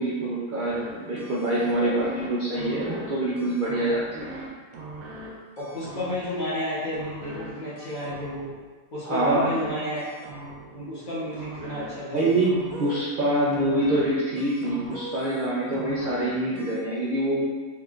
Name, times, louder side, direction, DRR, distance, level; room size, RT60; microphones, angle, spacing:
voice 1, 0.0-4.3 9.0-9.5 12.1-17.5, right 1 dB, 60° right, -8 dB, 0.5 m, -25 dB
sound 1, 0.7-0.9 1.2-2.3 2.5-3.1 3.4-4.5 4.7-5.3 5.6-6.4 6.9-7.5 7.8-8.6 9.1-9.7 10.0-10.8 11.3-11.9 12.2-13.0 13.5-14.1 14.4-15.5 15.7-16.3 16.6-16.8, right 2 dB, 80° right, 1.1 m, -40 dB
voice 2, 5.6-8.5 8.9-10.0 10.7-12.2, left 1 dB, 45° left, -9 dB, 0.7 m, -31 dB
3.7 x 2.5 x 2.3 m, 1.3 s
omnidirectional pair, 1.5 m